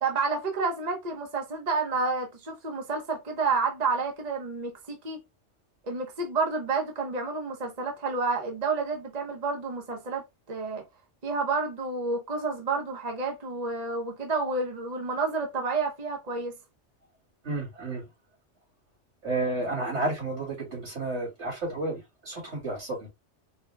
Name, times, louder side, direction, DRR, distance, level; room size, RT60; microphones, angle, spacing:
voice 1, 0.0-5.2 5.8-10.8 11.2-16.6, right 4 dB, 40° right, 0.9 m, -30 dB
voice 2, 17.4-18.0 19.2-23.1, right 2 dB, 75° right, 2.7 m, -31 dB
4.6 x 2.2 x 3.4 m
omnidirectional pair, 1.2 m